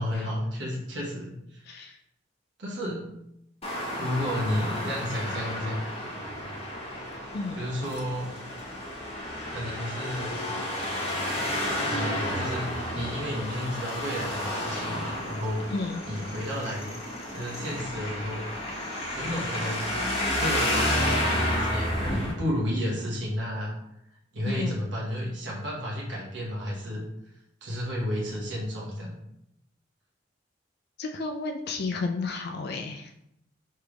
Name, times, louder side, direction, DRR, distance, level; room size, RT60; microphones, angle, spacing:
voice 1, 0.0-1.6 2.6-3.2 4.0-5.8 7.5-8.3 9.5-10.4 11.9-15.7 16.1-16.9 17.3-18.4 19.2-19.9 20.4-23.7 24.3-27.1 27.6-29.2, equal, 70° right, -5 dB, 1.3 m, -32 dB
voice 2, 1.7-2.0 7.3-7.6 15.7-16.0 24.5-24.8 31.0-33.1, left 3 dB, 60° left, 4 dB, 0.4 m, -32 dB
Traffic noise roadway noise, 3.6-22.3, left 1 dB, 35° left, 1.1 m, -31 dB
3.4 x 3.3 x 4.8 m, 0.79 s
head